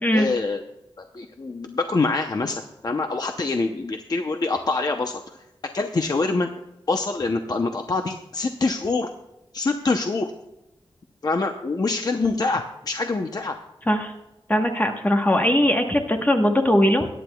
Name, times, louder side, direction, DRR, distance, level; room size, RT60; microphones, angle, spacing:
voice 1, 0.1-0.6 1.1-5.4 5.7-6.5 6.9-9.1 9.5-10.3 11.2-13.6, left 3 dB, 40° left, 5 dB, 0.7 m, -25 dB
voice 2, 14.5-17.1, left 1 dB, 15° left, 3 dB, 1.1 m, -20 dB
22.5 x 10.0 x 2.3 m, 0.95 s
wide cardioid pair, 120°, 10 cm